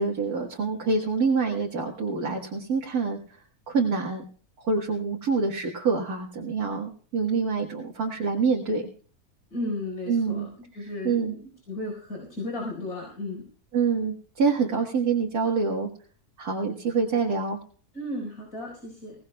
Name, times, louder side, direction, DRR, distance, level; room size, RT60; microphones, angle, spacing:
voice 1, 0.0-3.2 3.7-4.3 4.6-8.9 10.1-10.5 10.8-11.4 13.7-15.9 16.4-17.6, right 4 dB, 80° right, -1 dB, 2.1 m, -26 dB
voice 2, 9.5-10.4 10.7-13.4 17.9-19.1, left 1 dB, 80° left, -1 dB, 5.0 m, -34 dB
21.5 x 18.0 x 2.3 m, 0.43 s
omnidirectional pair, 1.6 m